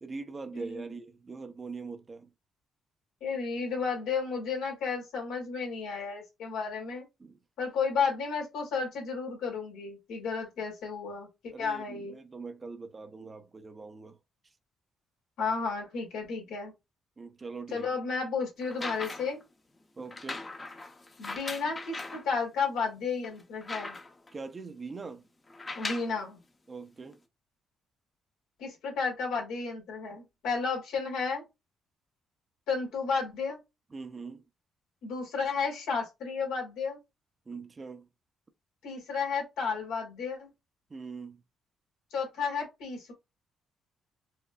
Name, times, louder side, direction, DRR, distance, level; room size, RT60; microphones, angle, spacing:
voice 1, 0.0-2.3 7.2-7.4 11.5-14.2 17.2-17.9 20.0-20.5 24.3-25.3 26.7-27.2 33.9-34.4 37.5-38.1 40.9-41.4, right 4 dB, 30° right, 0.6 m, -42 dB
voice 2, 0.5-0.9 3.2-7.1 7.6-12.2 15.4-16.7 17.7-19.4 21.2-24.0 25.7-26.4 28.6-31.4 32.7-33.6 35.0-37.0 38.8-40.5 42.1-43.1, left 5 dB, 85° left, 1.8 m, -32 dB
sound 1, 18.6-19.4 20.1-22.3 22.8-22.9 23.2-24.3 25.5-26.2 27.1-27.2, left 2 dB, 25° left, 0.7 m, -39 dB
4.7 x 2.2 x 2.2 m
cardioid pair, 90°, 0 cm